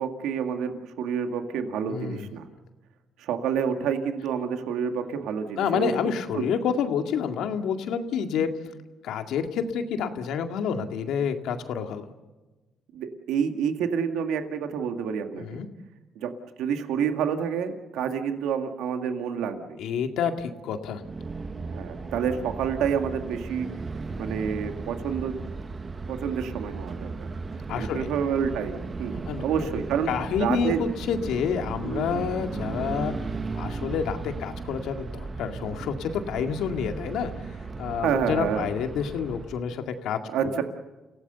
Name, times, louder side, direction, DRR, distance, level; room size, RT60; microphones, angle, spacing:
voice 1, 0.0-2.5 3.2-5.9 6.3-6.4 12.9-15.6 16.2-16.3 16.6-19.8 21.7-23.7 24.2-25.4 26.1-27.3 27.7-30.1 30.4-30.8 31.8-32.3 38.0-38.7 40.3-40.6, right 7 dB, 90° right, 6 dB, 2.0 m, -28 dB
voice 2, 1.9-2.3 5.6-8.5 9.0-12.1 15.3-15.7 19.8-21.0 27.7-28.1 29.3-29.4 30.1-33.1 33.5-37.5 37.8-40.2, left 7 dB, 85° left, 6 dB, 2.1 m, -28 dB
sound 1, 21.0-39.7, right 4 dB, 35° right, 1.2 m, -36 dB
29.5 x 17.0 x 6.8 m, 1.1 s
cardioid pair, 90°, 0 cm